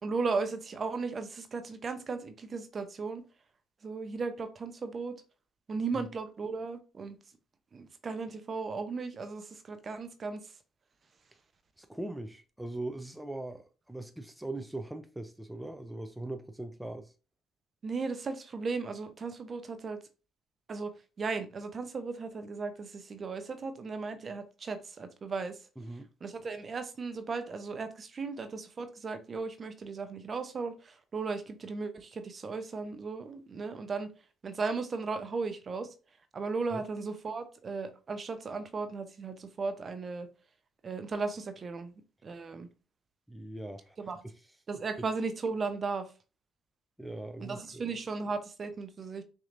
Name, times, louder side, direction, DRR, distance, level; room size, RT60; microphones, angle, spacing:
voice 1, 0.0-3.2 3.8-5.1 5.7-7.2 7.7-10.5 17.8-20.0 20.7-25.6 26.2-34.1 34.4-35.9 36.3-40.3 40.8-41.9 42.2-42.7 44.0-44.2 44.7-46.1 47.4-49.2, right 4 dB, 40° right, 0.7 m, -36 dB
voice 2, 11.8-17.1 25.8-26.1 36.7-36.8 43.3-44.4 47.0-47.8, right 2 dB, 5° right, 0.5 m, -41 dB
5.7 x 2.8 x 2.6 m
hypercardioid pair, 50°, 0 cm